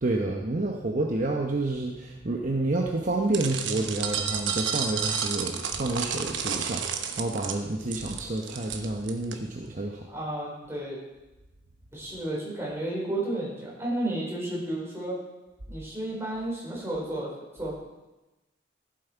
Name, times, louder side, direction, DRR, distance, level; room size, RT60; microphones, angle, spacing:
voice 1, 0.0-10.1, right 2 dB, 45° right, 0 dB, 0.9 m, -29 dB
sound 1, 3.3-9.4, right 7 dB, 85° right, 1.0 m, -31 dB
voice 2, 10.1-11.0 11.9-15.2 15.7-17.7, right 1 dB, 15° right, -5 dB, 4.2 m, -32 dB
15.0 x 7.7 x 4.5 m, 1.0 s
head